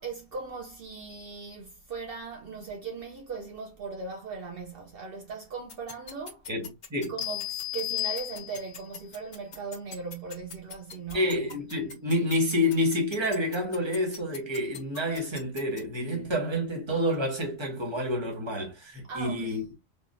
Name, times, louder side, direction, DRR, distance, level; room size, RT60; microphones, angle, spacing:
voice 1, 0.0-6.5 7.1-11.4 19.1-19.7, right 5 dB, 65° right, 0.8 m, -39 dB
sound 1, 5.7-15.8, left 6 dB, 55° left, 0.9 m, -42 dB
voice 2, 6.5-7.1 11.1-19.6, left 1 dB, 25° right, 1.0 m, -28 dB
sound 2, 7.2-8.9, left 16 dB, 90° left, 0.9 m, -33 dB
3.5 x 2.3 x 2.6 m
omnidirectional pair, 1.1 m